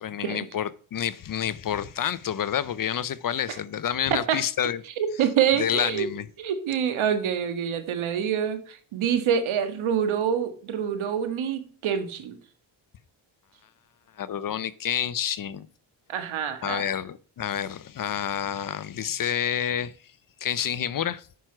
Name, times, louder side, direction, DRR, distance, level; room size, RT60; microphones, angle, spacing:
voice 1, 0.0-4.8 5.5-6.3 14.2-15.7 16.6-19.9 20.4-21.3, left 9 dB, 45° left, 0.6 m, -29 dB
voice 2, 4.1-4.4 5.0-6.1 6.4-12.4 16.1-16.9, right 8 dB, 75° right, 1.7 m, -26 dB
9.3 x 6.1 x 4.6 m
cardioid pair, 95°, 48 cm